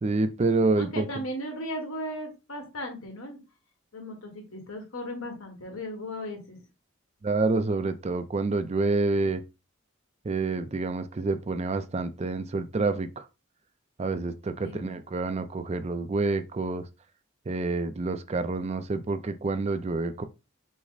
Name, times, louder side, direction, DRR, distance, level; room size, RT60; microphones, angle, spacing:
voice 1, 0.0-1.1 7.2-9.4 10.2-13.2 14.0-16.8 17.5-20.2, right 3 dB, 30° right, 0.4 m, -28 dB
voice 2, 0.8-3.4 3.9-6.6 10.5-10.7 14.6-14.9, equal, 85° left, 1.5 m, -36 dB
5.9 x 2.1 x 4.0 m
head